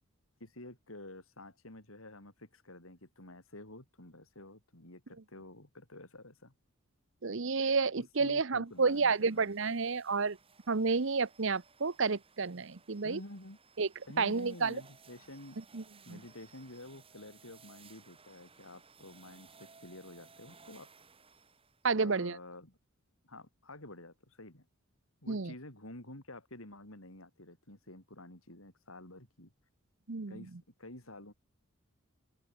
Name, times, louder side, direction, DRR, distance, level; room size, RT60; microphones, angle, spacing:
voice 1, 0.4-6.5 7.9-9.5 13.0-13.6 14.1-15.6 16.0-20.9 21.9-22.8 23.2-24.7 25.2-29.5 30.3-30.5 30.8-31.3, left 1 dB, 70° left, 5.7 m, -50 dB
voice 2, 7.2-10.4 10.7-13.2 13.8-13.9 14.2-14.8 15.7-16.2 21.8-22.4 25.3-25.5 30.1-30.4, right 4 dB, 60° right, 0.8 m, -30 dB
sound 1, 8.7-21.9, right 5 dB, 25° right, 4.3 m, -60 dB
open air
head